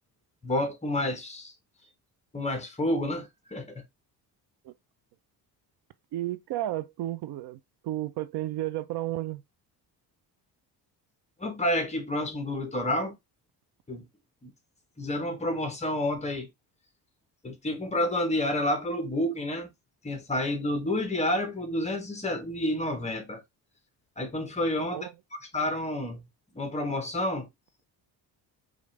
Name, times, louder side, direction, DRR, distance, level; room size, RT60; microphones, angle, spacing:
voice 1, 0.4-1.5 2.3-3.8 11.4-13.2 13.9-14.1 14.4-14.5 15.0-16.5 17.4-19.7 20.0-23.4 24.2-25.1 25.5-26.2 26.5-27.5, left 1 dB, 15° left, 1.1 m, -29 dB
voice 2, 6.1-9.4 24.9-25.1, right 14 dB, 70° right, 0.6 m, -33 dB
5.2 x 2.5 x 3.2 m
cardioid pair, 130°, 41 cm